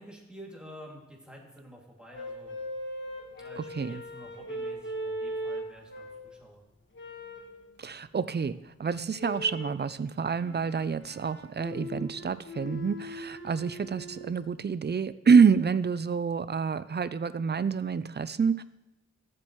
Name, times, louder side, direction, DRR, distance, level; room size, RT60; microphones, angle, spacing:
voice 1, 0.0-2.6 3.4-6.6, equal, 5° right, -2 dB, 2.5 m, -49 dB
sound 1, 2.1-6.4 6.9-7.6 9.2-9.8 10.4-14.4, equal, 40° left, 1.5 m, -39 dB
voice 2, 7.8-18.6, right 6 dB, 35° right, 15 dB, 0.5 m, -27 dB
14.0 x 7.5 x 3.1 m, 1.0 s
cardioid pair, 50°, 29 cm